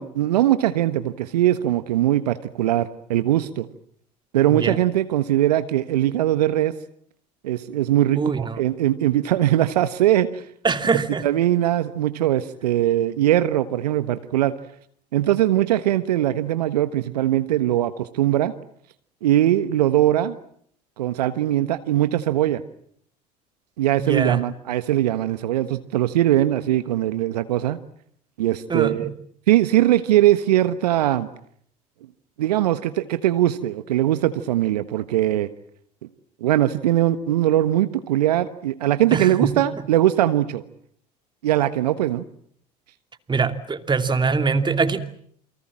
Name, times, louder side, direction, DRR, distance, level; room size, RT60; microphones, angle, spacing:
voice 1, 0.0-3.7 4.3-6.7 7.4-10.4 11.2-14.5 15.1-18.5 19.2-20.4 21.0-22.6 23.8-27.8 28.4-29.1 29.5-31.3 32.4-35.5 36.4-40.6 41.4-42.2, right 13 dB, 75° right, 12 dB, 1.3 m, -21 dB
voice 2, 4.5-4.8 8.1-8.6 10.6-11.3 24.0-24.5 28.7-29.1 39.1-39.5 43.3-45.0, right 5 dB, 20° right, 8 dB, 2.7 m, -23 dB
28.5 x 24.0 x 7.6 m, 0.65 s
hypercardioid pair, 70°, 21 cm